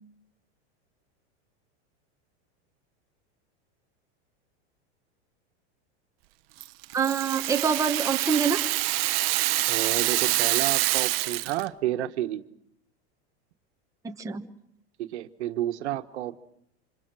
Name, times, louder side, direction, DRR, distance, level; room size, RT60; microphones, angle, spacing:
Rattle (instrument), 6.6-11.7, right 19 dB, 60° right, 0.9 m, -26 dB
voice 1, 6.9-8.6 14.0-14.5, right 6 dB, 10° right, 3 dB, 1.1 m, -26 dB
voice 2, 9.7-12.4 15.0-16.4, right 13 dB, 85° right, 8 dB, 1.5 m, -30 dB
26.5 x 26.0 x 6.2 m, 0.72 s
supercardioid pair, 145°, 33 cm